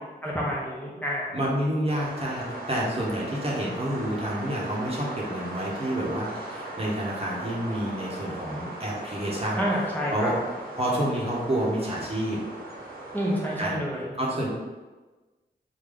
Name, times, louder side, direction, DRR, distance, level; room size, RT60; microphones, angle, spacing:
voice 1, 0.2-1.4 9.6-10.3 13.1-14.1, equal, 10° left, -5 dB, 0.8 m, -29 dB
voice 2, 1.3-9.6 10.1-10.3 10.8-12.4 13.6-13.8 14.2-14.5, right 1 dB, 35° right, -5 dB, 1.0 m, -29 dB
sound 1, 1.9-13.6, right 2 dB, 60° right, 1.1 m, -38 dB
3.4 x 2.2 x 3.8 m, 1.2 s
cardioid pair, 50°, 18 cm